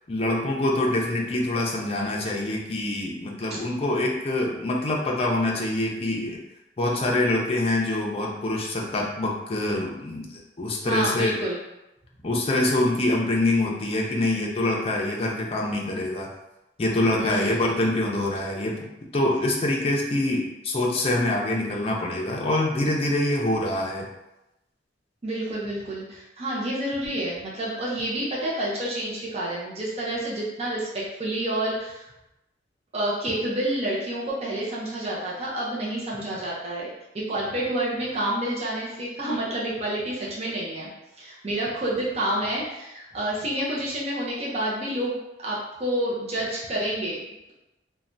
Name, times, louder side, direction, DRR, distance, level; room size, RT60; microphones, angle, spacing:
voice 1, 0.1-6.4 6.8-11.4 12.2-16.3 16.8-18.8 19.1-24.1, left 1 dB, 35° left, -2 dB, 0.5 m, -25 dB
voice 2, 10.8-11.6 17.2-17.6 25.2-32.1 32.9-40.9 41.2-47.2, right 1 dB, 35° right, -6 dB, 0.6 m, -29 dB
3.1 x 2.2 x 2.6 m, 0.93 s
head